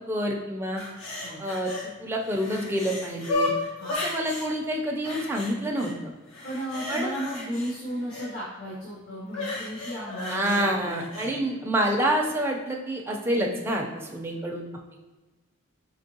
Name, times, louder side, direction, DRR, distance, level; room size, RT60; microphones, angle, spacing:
voice 1, 0.1-0.8 1.4-1.7 2.0-3.5 4.0-6.1 6.9-7.1 10.3-14.7, right 1 dB, 10° right, 0 dB, 0.4 m, -27 dB
sound 1, 0.8-1.9 2.2-4.5 5.0-5.9 6.3-8.3 9.3-11.3 11.8-11.9, left 2 dB, 75° left, 1.1 m, -33 dB
voice 2, 6.4-11.4, equal, 50° left, -6 dB, 1.0 m, -35 dB
4.4 x 3.2 x 2.8 m, 1.2 s
head